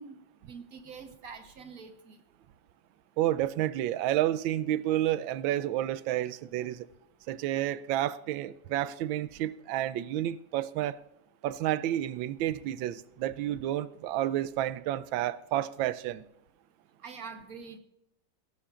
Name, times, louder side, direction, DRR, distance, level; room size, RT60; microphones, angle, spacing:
voice 1, 0.0-2.2 17.0-17.8, right 5 dB, 55° right, 1.3 m, -45 dB
voice 2, 3.2-6.9 7.3-11.0 11.4-16.2, right 13 dB, 85° right, 1.3 m, -30 dB
20.5 x 11.5 x 2.4 m
omnidirectional pair, 2.1 m